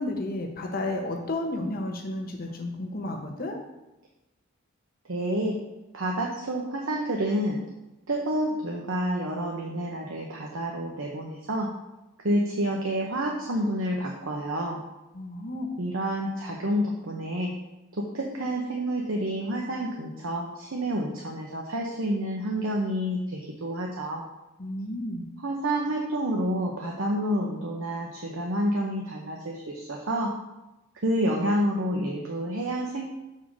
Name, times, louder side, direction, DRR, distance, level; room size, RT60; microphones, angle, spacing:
voice 1, 0.0-3.6 15.1-15.7 24.6-25.2, left 2 dB, 45° left, 2 dB, 1.0 m, -32 dB
voice 2, 5.1-5.6 5.9-7.6 8.1-11.7 12.2-14.8 15.8-17.5 17.9-24.2 25.4-30.3 31.0-33.1, right 1 dB, 75° right, 0 dB, 0.9 m, -29 dB
6.7 x 3.7 x 6.3 m, 0.97 s
head